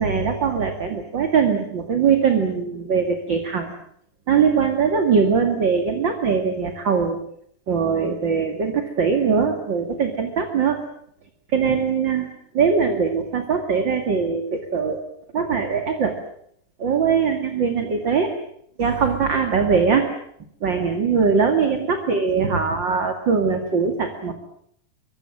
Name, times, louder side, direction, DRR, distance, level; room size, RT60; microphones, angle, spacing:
voice 1, 0.0-3.7 4.3-7.2 7.7-10.8 11.5-15.0 15.3-16.2 16.8-18.3 18.8-20.1 20.6-24.3, right 6 dB, 35° right, 5 dB, 2.4 m, -21 dB
25.0 x 24.0 x 7.5 m, 0.68 s
omnidirectional pair, 4.3 m